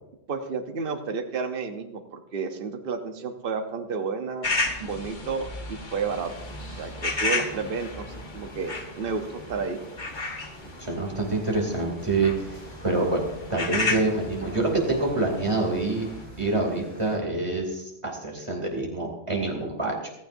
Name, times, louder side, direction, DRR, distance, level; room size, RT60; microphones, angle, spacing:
voice 1, 0.3-4.5 4.8-6.3 6.7-9.8, right 5 dB, 60° right, 5 dB, 1.1 m, -31 dB
sound 1, 4.4-16.2, left 2 dB, 50° left, 1.5 m, -33 dB
sound 2, 5.9-17.2, right 1 dB, 15° left, 5.3 m, -46 dB
voice 2, 10.8-12.3 12.8-13.2 13.5-16.1 16.4-20.1, right 2 dB, 30° right, 0 dB, 2.8 m, -26 dB
15.0 x 15.0 x 2.6 m, 0.90 s
omnidirectional pair, 1.1 m